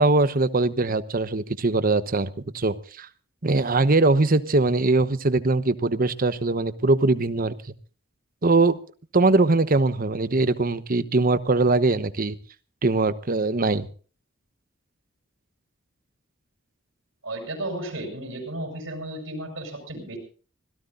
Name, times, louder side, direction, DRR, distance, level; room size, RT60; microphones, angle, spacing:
voice 1, 0.0-3.1 3.4-7.6 8.4-8.8 9.1-12.3 12.8-13.9, right 3 dB, 45° right, 13 dB, 1.0 m, -21 dB
voice 2, 17.2-20.2, right 1 dB, 65° right, 4 dB, 5.9 m, -33 dB
25.5 x 17.5 x 2.6 m, 0.39 s
head